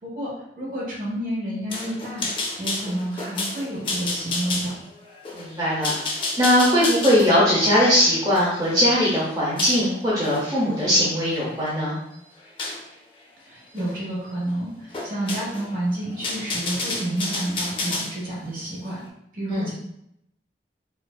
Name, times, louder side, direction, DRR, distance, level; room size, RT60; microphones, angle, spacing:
voice 1, 0.0-2.3 2.6-4.7 13.4-19.0 19.3-19.7, right 1 dB, 50° right, -5 dB, 1.3 m, -30 dB
sound 1, 1.7-9.8 10.2-10.5 11.0-11.7 12.6-12.8 13.8-14.0 14.2-14.3 14.9-15.7 16.0-18.1, left 3 dB, 30° left, 0.5 m, -30 dB
voice 2, 5.3-5.9 6.4-12.0 19.5-19.7, equal, 20° right, -7 dB, 0.7 m, -20 dB
4.6 x 2.5 x 2.3 m, 0.78 s
head